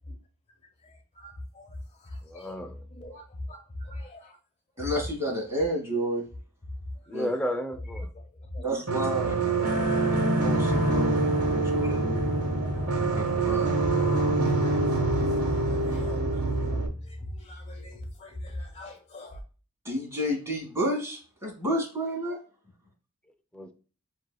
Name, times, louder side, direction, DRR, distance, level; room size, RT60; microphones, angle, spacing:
voice 1, 0.8-2.6 2.9-4.4 7.0-7.2 8.1-8.3 8.5-8.7 9.5-11.5 12.8-13.2 14.1-19.4, left 1 dB, 30° left, 1.3 m, -41 dB
voice 2, 2.2-2.9 7.1-8.1 23.5-23.7, equal, 5° left, 0.6 m, -33 dB
voice 3, 4.8-6.2 7.1-7.3 8.6-9.3 10.2-11.2 11.5-12.3 13.1-13.7 19.8-22.4, equal, 15° right, 1.8 m, -30 dB
sound 1, 8.9-16.9, right 2 dB, 80° right, 1.3 m, -25 dB
7.8 x 3.0 x 2.3 m
head